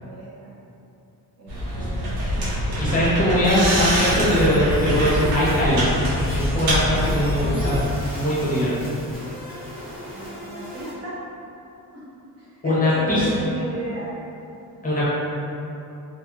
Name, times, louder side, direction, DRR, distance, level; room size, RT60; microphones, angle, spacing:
voice 1, 0.0-0.6 1.4-2.3 10.1-11.2 11.9-12.0 12.4-14.1, right 1 dB, 45° right, -8 dB, 0.7 m, -34 dB
sound 1, 1.5-7.8, equal, 85° right, 0.9 m, -24 dB
voice 2, 2.8-5.9 6.3-7.7 8.1-8.8 12.6-13.2 14.8-15.1, equal, 20° left, -9 dB, 0.7 m, -21 dB
sound 2, 3.4-10.9, left 1 dB, 5° right, 1.0 m, -36 dB
2.9 x 2.7 x 2.4 m, 2.8 s
cardioid pair, 150°, 37 cm